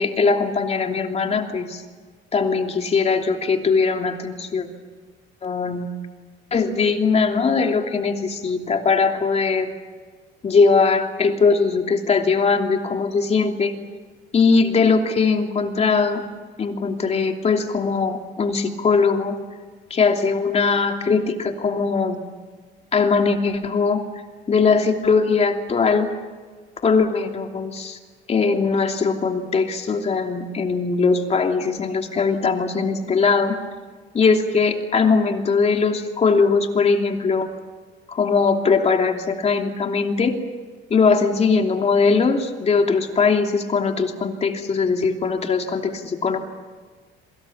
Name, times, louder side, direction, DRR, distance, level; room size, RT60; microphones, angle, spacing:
voice 1, 0.0-1.8 2.3-4.7 5.4-5.9 6.5-9.7 10.4-13.7 14.3-16.2 16.6-19.4 19.9-22.2 22.9-24.0 24.5-26.1 26.8-28.0 28.3-33.6 34.1-37.5 38.1-40.4 40.9-46.4, left 4 dB, 30° left, 4 dB, 2.9 m, -20 dB
27.5 x 24.0 x 7.3 m, 1.5 s
cardioid pair, 125°, 20 cm